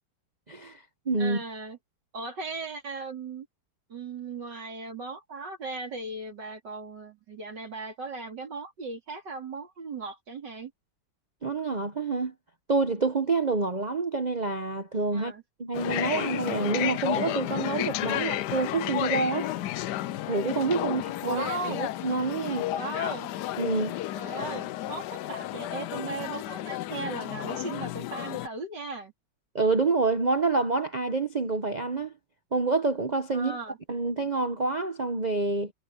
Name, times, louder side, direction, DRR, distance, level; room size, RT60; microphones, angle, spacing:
voice 1, 0.5-1.4 11.4-12.3 12.7-15.3 15.6-19.5 20.3-21.4 21.8-22.7 23.6-24.0 29.5-32.1 32.5-33.6 33.9-35.7, right 3 dB, 40° right, 0.6 m, -27 dB
voice 2, 1.2-1.8 2.1-3.5 3.9-10.7 15.1-15.4 18.1-18.3 20.8-21.8 22.7-23.3 24.1-29.1 33.3-33.8, right 3 dB, 65° right, 4.0 m, -37 dB
sound 1, 15.7-28.5, left 14 dB, 75° left, 1.1 m, -32 dB
omnidirectional pair, 2.0 m